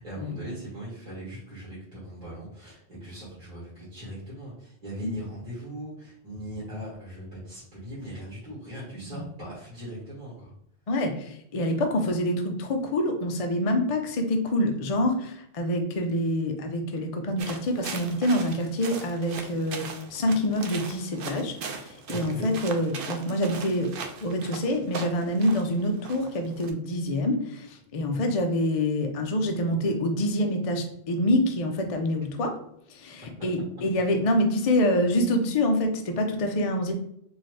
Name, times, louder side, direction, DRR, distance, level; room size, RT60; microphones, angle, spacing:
voice 1, 0.0-10.5 22.1-22.5 28.1-28.4, right 1 dB, 30° right, -9 dB, 1.8 m, -40 dB
voice 2, 10.9-23.9 24.2-32.5 32.9-36.9, left 1 dB, 55° left, 4 dB, 0.4 m, -26 dB
sound 1, 17.4-26.7, right 5 dB, 60° right, 0.6 m, -39 dB
4.2 x 2.7 x 3.2 m, 0.71 s
omnidirectional pair, 1.3 m